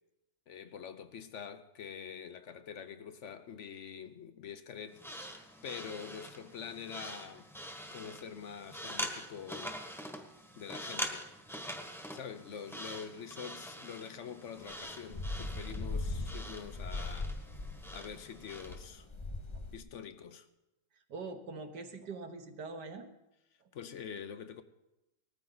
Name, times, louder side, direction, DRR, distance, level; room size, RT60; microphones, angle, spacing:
voice 1, 0.5-5.1 5.6-7.5 7.9-9.8 10.6-11.3 12.1-17.3 17.9-19.1 19.7-20.5 23.7-24.6, left 7 dB, 55° left, 0.9 m, -45 dB
sound 1, 4.9-18.8, equal, ahead, 1.2 m, -44 dB
sound 2, 14.6-19.8, left 2 dB, 30° left, 0.5 m, -39 dB
voice 2, 21.1-23.1, right 3 dB, 70° right, 1.9 m, -43 dB
19.5 x 14.0 x 4.0 m
omnidirectional pair, 1.9 m